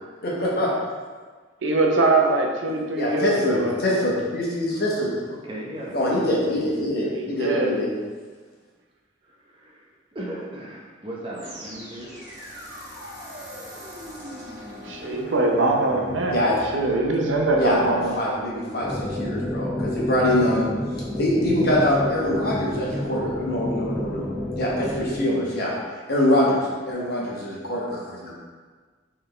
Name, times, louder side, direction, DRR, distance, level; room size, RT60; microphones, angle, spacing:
voice 1, 0.2-0.7 2.9-5.1 5.9-7.9 16.3-16.5 17.6-20.7 21.2-24.3 24.5-25.7 26.1-26.6 26.9-28.3, left 1 dB, 55° left, -4 dB, 1.0 m, -24 dB
voice 2, 1.6-4.0 7.1-7.7 14.9-16.5 16.7-18.1, right 2 dB, 80° right, 1 dB, 0.6 m, -22 dB
voice 3, 5.3-6.4 6.9-7.4 9.2-12.2 12.6-12.7, right 1 dB, 30° right, -3 dB, 0.8 m, -37 dB
sound 1, 11.3-20.5, left 1 dB, 45° right, 1.3 m, -41 dB
sound 2, 18.8-25.2, left 1 dB, 10° left, 0.4 m, -29 dB
4.2 x 3.4 x 3.2 m, 1.5 s
head